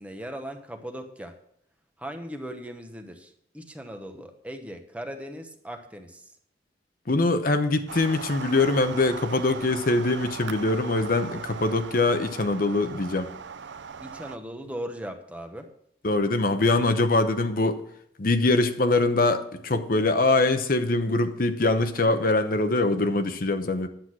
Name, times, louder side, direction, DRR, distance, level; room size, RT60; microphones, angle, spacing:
voice 1, 0.0-1.3 2.0-6.3 14.0-15.7, equal, 10° right, 5 dB, 1.0 m, -38 dB
voice 2, 7.1-13.3 16.0-17.8 18.2-23.9, left 2 dB, 55° left, 8 dB, 0.9 m, -23 dB
sound 1, 7.9-14.4, right 6 dB, 85° right, 0.5 m, -39 dB
10.5 x 7.9 x 6.1 m, 0.69 s
head